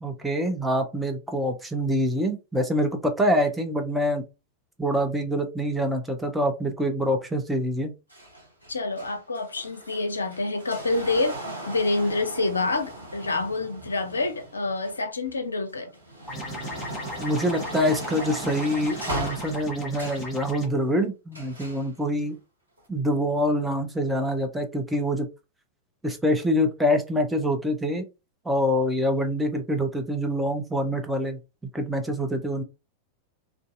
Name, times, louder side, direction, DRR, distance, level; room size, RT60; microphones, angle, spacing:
voice 1, 0.0-4.2 4.8-7.9 17.2-22.4 22.9-25.3 26.0-28.0 28.4-31.4 31.7-32.6, equal, 5° right, 0.5 m, -25 dB
sound 1, 8.1-15.3 15.8-20.3 21.3-21.9 22.8-22.9, right 1 dB, 85° right, 0.9 m, -38 dB
voice 2, 8.7-11.4 11.7-15.9, left 2 dB, 75° left, 0.4 m, -27 dB
sound 2, 16.3-20.7, left 1 dB, 15° left, 1.1 m, -37 dB
2.6 x 2.3 x 2.4 m
figure-of-eight pair, 90°, 0 cm